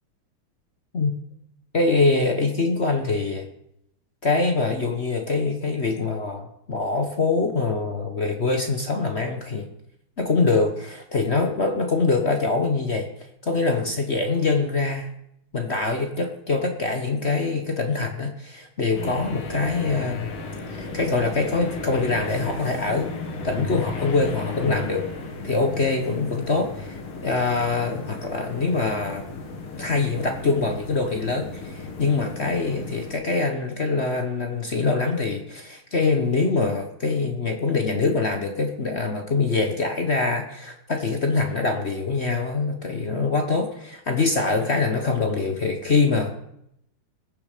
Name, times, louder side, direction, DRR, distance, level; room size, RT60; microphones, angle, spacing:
voice 1, 1.7-3.5 4.2-9.7 10.2-13.1 13.4-15.1 15.5-20.3 20.7-23.1 23.4-25.1 25.4-29.3 29.7-46.3, left 3 dB, 40° left, 5 dB, 1.1 m, -24 dB
sound 1, 18.9-33.1, left 3 dB, 80° left, 2.7 m, -35 dB
20.5 x 7.0 x 5.1 m, 0.77 s
omnidirectional pair, 2.3 m